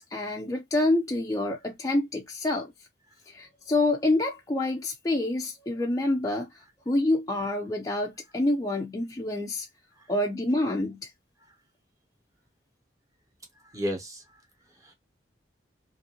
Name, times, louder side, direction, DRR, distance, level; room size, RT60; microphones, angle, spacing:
voice 1, 0.0-2.7 3.3-6.5 6.9-9.7 10.1-11.1, left 2 dB, 20° left, 0.3 m, -27 dB
voice 2, 13.6-14.4 14.7-14.9, equal, 20° right, 0.9 m, -35 dB
2.6 x 2.5 x 2.8 m
head